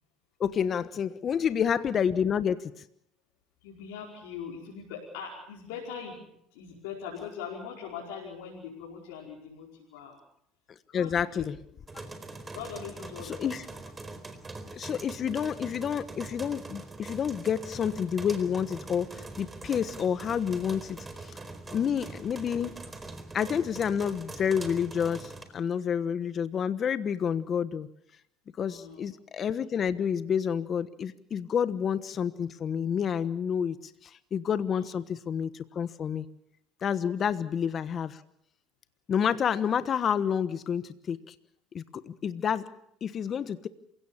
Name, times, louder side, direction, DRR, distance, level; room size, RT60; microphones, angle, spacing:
voice 1, 0.4-2.7 10.9-11.6 13.2-13.6 14.7-21.3 21.7-22.7 23.3-27.9 28.6-33.8 34.0-36.3 36.8-38.2 39.1-41.3 41.7-42.7 43.0-43.7, left 8 dB, 45° left, 13 dB, 1.2 m, -29 dB
voice 2, 3.6-6.2 6.5-10.2 10.9-11.5 12.5-13.5 21.6-22.2 28.6-29.1 34.7-34.8 37.2-37.3, left 7 dB, 85° left, -4 dB, 5.2 m, -41 dB
sound 1, 11.9-25.4, right 3 dB, 20° right, 4.3 m, -43 dB
28.0 x 17.0 x 7.3 m, 0.74 s
supercardioid pair, 80°, 0 cm